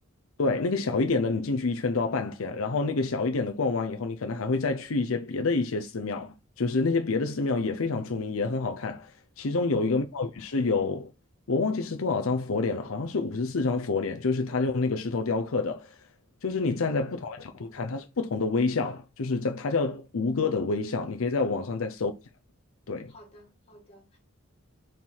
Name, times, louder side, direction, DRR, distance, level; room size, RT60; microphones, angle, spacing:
voice 1, 0.4-11.1 11.5-16.0 16.4-22.1 22.9-23.1, left 3 dB, 75° left, 0.6 m, -28 dB
voice 2, 23.1-24.2, equal, 30° left, 2.3 m, -56 dB
4.6 x 4.6 x 5.5 m
head